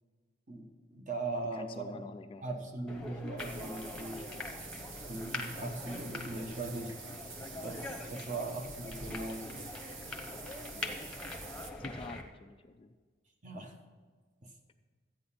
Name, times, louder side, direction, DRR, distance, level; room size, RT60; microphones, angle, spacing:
voice 1, 0.5-2.0 2.4-4.3 5.0-7.0 7.6-9.5 13.4-13.7 14.4-14.5, right 2 dB, 40° right, 4 dB, 1.2 m, -39 dB
voice 2, 1.5-2.4 11.8-13.0, left 3 dB, 25° left, 8 dB, 0.4 m, -47 dB
sound 1, 2.9-12.2, left 2 dB, 5° left, 1.0 m, -43 dB
sound 2, 3.4-11.7, right 5 dB, 70° right, 1.1 m, -48 dB
13.0 x 8.7 x 5.7 m, 1.5 s
head